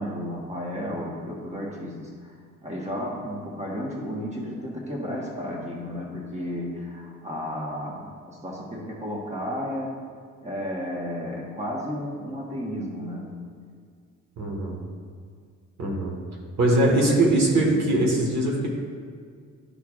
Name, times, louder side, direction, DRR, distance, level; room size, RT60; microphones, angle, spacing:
voice 1, 0.0-2.3 2.6-10.0 10.4-13.4, equal, 20° right, -3 dB, 1.4 m, -33 dB
voice 2, 14.4-14.8 15.8-16.2 16.6-18.7, right 1 dB, 65° right, -1 dB, 1.6 m, -21 dB
11.5 x 4.6 x 2.5 m, 2.1 s
cardioid pair, 90°, 30 cm